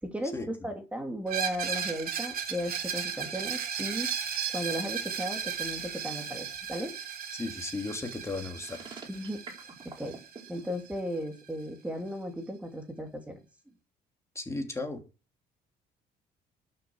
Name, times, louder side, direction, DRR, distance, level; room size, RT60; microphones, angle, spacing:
voice 1, 0.0-0.3 0.6-4.1 4.5-6.9 9.1-9.4 10.0-10.2 10.5-13.4, equal, 10° right, 4 dB, 2.7 m, -35 dB
Screech, 1.3-10.9, right 8 dB, 60° right, 2.9 m, -36 dB
voice 2, 7.3-8.9 14.3-15.0, left 3 dB, 15° left, 4 dB, 2.9 m, -35 dB
sound 1, 8.6-10.7, right 4 dB, 25° right, 4.3 m, -45 dB
12.0 x 7.1 x 6.3 m, 0.32 s
cardioid pair, 110°, 17 cm